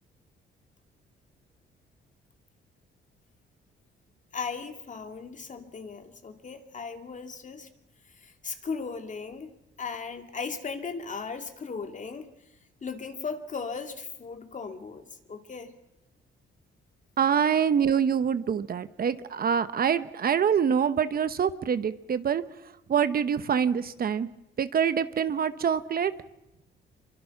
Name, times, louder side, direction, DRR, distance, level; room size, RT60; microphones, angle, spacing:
voice 1, 4.3-7.7 8.0-12.3 12.8-15.7, left 5 dB, 40° left, 6 dB, 2.4 m, -37 dB
voice 2, 17.2-22.4 22.9-24.3 24.6-26.1, right 7 dB, 50° right, 12 dB, 1.0 m, -25 dB
25.0 x 24.0 x 6.0 m, 0.91 s
cardioid pair, 90°, 20 cm